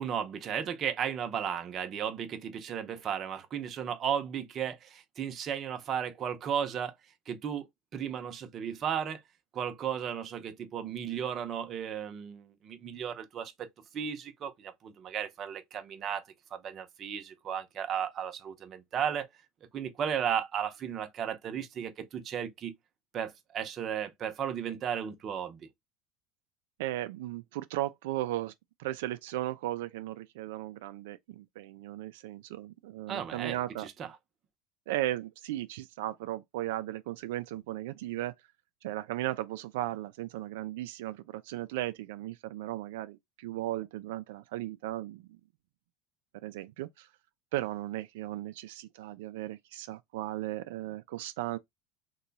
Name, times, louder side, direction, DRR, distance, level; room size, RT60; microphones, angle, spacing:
voice 1, 0.0-7.0 7.3-7.7 7.9-9.2 9.5-13.7 13.9-16.2 16.5-19.3 19.7-22.7 23.1-25.7 33.1-34.1, right 8 dB, 35° right, 0.7 m, -35 dB
voice 2, 26.8-28.5 28.8-33.9 34.9-38.3 38.8-45.3 46.4-47.1 47.5-51.6, right 15 dB, 85° right, 0.3 m, -36 dB
2.9 x 2.2 x 3.9 m
supercardioid pair, 140°, 0 cm